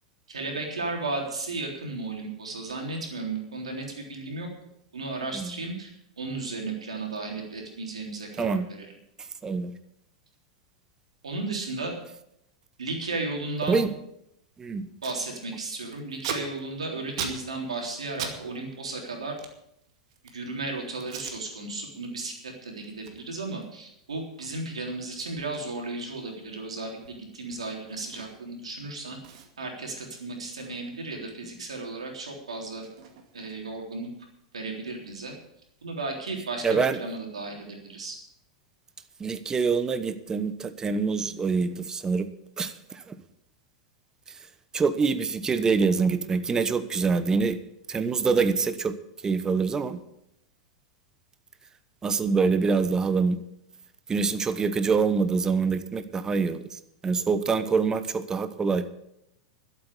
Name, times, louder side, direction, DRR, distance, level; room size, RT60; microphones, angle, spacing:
voice 1, 0.3-4.5 4.9-8.9 11.2-12.0 12.8-13.8 15.0-19.4 20.2-27.0 27.3-29.2 29.6-32.8 33.3-34.1 34.5-35.3 35.8-38.2, right 3 dB, 90° right, 1 dB, 3.6 m, -34 dB
voice 2, 8.4-8.7 9.4-9.7 13.7-13.9 14.6-14.9 36.6-37.0 39.2-42.3 42.6-43.1 44.3-44.4 44.7-47.6 47.9-48.9 49.2-50.0 52.0-53.4 54.1-58.9, right 5 dB, 20° right, 12 dB, 1.1 m, -25 dB
Packing tape duct tape, 14.5-14.6 14.8-15.2 15.5-18.4 18.6-20.5 21.0-21.4 21.8-22.1 22.4-28.6 28.9-29.0 29.2-31.6 31.9-33.8, right 7 dB, 65° right, 2.2 m, -42 dB
12.0 x 8.5 x 8.5 m, 0.78 s
hypercardioid pair, 105°, 3 cm